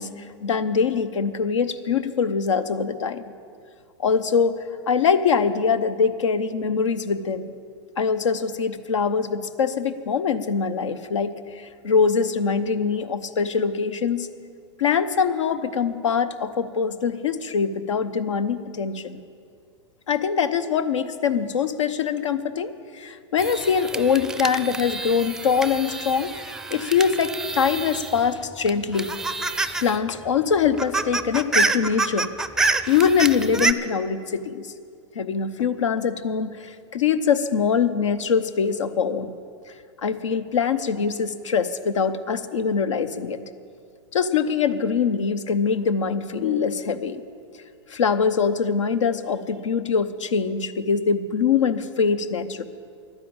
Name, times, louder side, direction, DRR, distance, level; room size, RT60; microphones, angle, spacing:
voice 1, 0.0-3.3 4.0-7.6 8.0-14.3 14.8-19.2 20.1-26.4 26.7-29.1 29.8-32.3 32.9-34.7 35.1-39.3 40.0-43.4 44.1-47.2 47.9-52.6, left 6 dB, 80° left, 12 dB, 0.8 m, -23 dB
sound 1, 23.4-28.3 28.7-30.0 30.3-30.4 30.6-33.7, right 3 dB, 5° right, 0.5 m, -27 dB
11.5 x 9.9 x 8.8 m, 2.3 s
hypercardioid pair, 115°, 15 cm